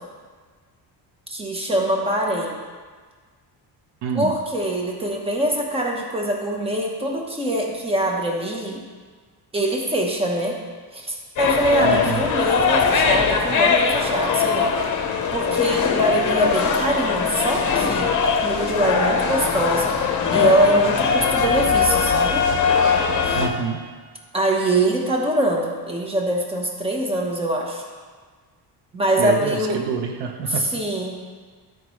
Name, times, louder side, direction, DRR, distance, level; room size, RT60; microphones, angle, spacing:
voice 1, 1.3-2.6 4.1-8.8 9.5-10.6 10.9-14.8 15.3-19.9 20.3-22.4 23.2-23.4 24.3-27.8 28.9-29.8 30.5-31.1, right 1 dB, 15° right, 0 dB, 1.1 m, -23 dB
voice 2, 4.0-4.3 11.8-12.2 23.3-23.9 29.2-30.7, right 6 dB, 80° right, 5 dB, 0.9 m, -26 dB
sound 1, 11.4-23.5, left 6 dB, 45° left, 0.9 m, -21 dB
14.5 x 5.1 x 3.2 m, 1.5 s
cardioid pair, 160°, 42 cm